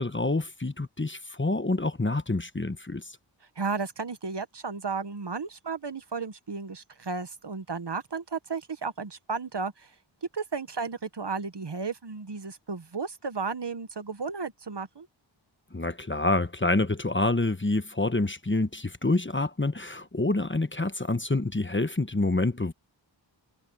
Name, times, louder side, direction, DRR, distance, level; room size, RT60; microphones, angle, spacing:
voice 1, 0.0-3.1 15.7-22.7, left 2 dB, 25° left, 1.1 m, -27 dB
voice 2, 3.6-9.9 10.3-15.1, right 4 dB, 60° right, 1.3 m, -34 dB
wide cardioid pair, 40°, 47 cm